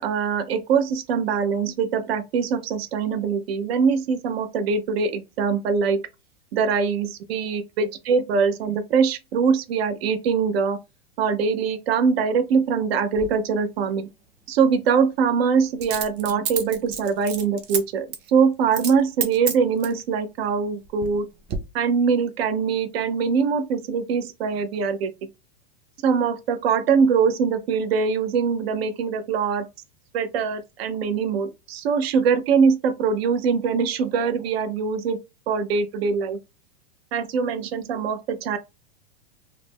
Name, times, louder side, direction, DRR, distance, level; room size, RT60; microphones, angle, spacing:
voice 1, 0.0-6.0 6.5-10.8 11.2-14.1 14.5-21.3 21.7-25.1 26.0-29.7 30.1-35.2 35.5-36.4 37.1-38.6, right 5 dB, 75° right, 0.6 m, -23 dB
Coin (dropping), 13.1-13.3 15.8-17.8 18.1-18.3 18.7-19.0 19.2-20.0 20.6-21.2 21.5-21.6, right 8 dB, 35° right, 0.6 m, -29 dB
2.4 x 2.1 x 3.3 m
hypercardioid pair, 125°, 31 cm